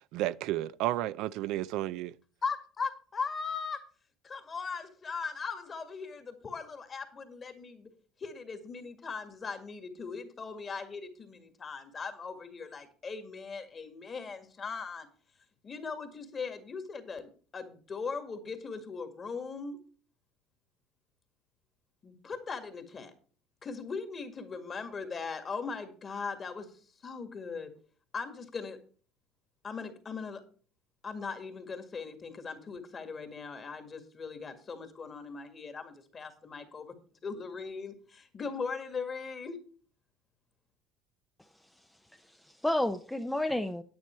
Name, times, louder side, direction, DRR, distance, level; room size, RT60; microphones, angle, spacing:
voice 1, 0.1-2.1, right 15 dB, 70° right, 0.4 m, -32 dB
voice 2, 2.4-3.8 4.2-7.9 8.2-15.1 15.6-19.8 22.0-23.1 23.6-26.7 27.0-27.7 28.1-28.8 29.6-30.4 31.0-36.9 37.2-39.6, left 5 dB, 30° left, 1.9 m, -39 dB
voice 3, 41.4-43.8, left 1 dB, 5° left, 0.6 m, -33 dB
9.6 x 8.7 x 4.5 m
cardioid pair, 115°, 0 cm